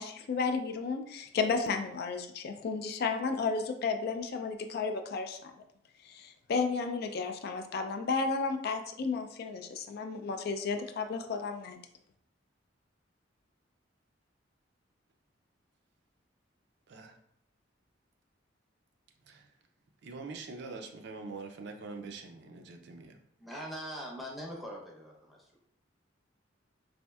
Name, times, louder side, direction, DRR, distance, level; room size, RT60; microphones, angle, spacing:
voice 1, 0.0-5.5 6.1-11.8, left 4 dB, 55° left, 6 dB, 0.3 m, -33 dB
voice 2, 20.0-23.2, right 3 dB, 65° right, 4 dB, 0.4 m, -44 dB
voice 3, 23.4-25.4, equal, ahead, -2 dB, 0.7 m, -42 dB
4.2 x 2.5 x 2.3 m, 0.71 s
head